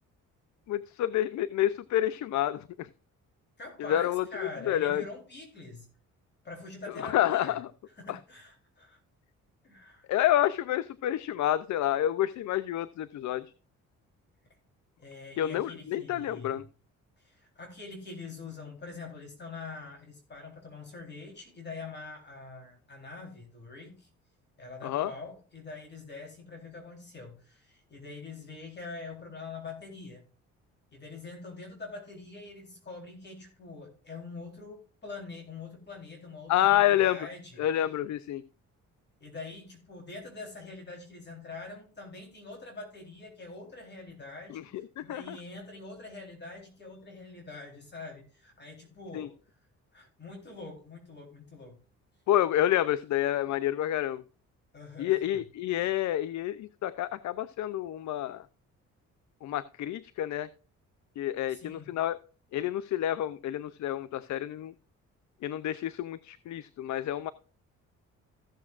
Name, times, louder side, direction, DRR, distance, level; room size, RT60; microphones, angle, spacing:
voice 1, 0.7-2.9 3.8-5.1 6.9-7.7 8.1-8.2 10.1-13.5 15.4-16.6 24.8-25.1 36.5-37.2 37.6-38.4 44.5-45.4 49.1-49.3 52.3-54.2 55.0-58.5 59.4-60.5 61.2-62.2 62.5-64.7 65.4-67.3, left 12 dB, 70° left, 15 dB, 0.6 m, -29 dB
voice 2, 3.6-5.9 6.4-7.6 8.0-9.0 9.6-10.1 15.0-16.6 17.2-24.1 24.6-30.3 30.9-37.6 39.2-44.7 45.0-49.3 49.9-51.8 54.7-55.2 61.5-61.9, left 3 dB, 35° left, 2 dB, 3.8 m, -44 dB
15.5 x 7.2 x 2.5 m, 0.38 s
cardioid pair, 90°, 30 cm